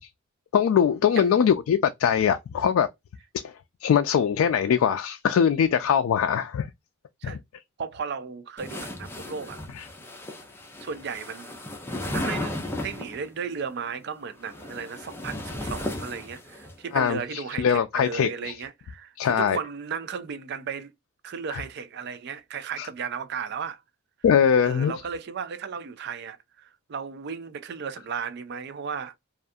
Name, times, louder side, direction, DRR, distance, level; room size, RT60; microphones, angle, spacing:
voice 1, 0.5-2.9 3.4-3.5 3.8-6.7 7.2-7.4 9.7-9.9 16.9-18.6 19.2-19.6 21.5-21.6 22.8-22.9 24.2-24.9, left 8 dB, 80° left, 0.3 m, -22 dB
voice 2, 7.8-9.6 10.8-11.6 12.1-20.9 21.2-23.8 24.6-29.1, right 6 dB, 55° right, 0.4 m, -35 dB
sound 1, 8.6-13.3 14.3-16.7, left 1 dB, 10° left, 0.5 m, -35 dB
2.4 x 2.3 x 2.6 m
head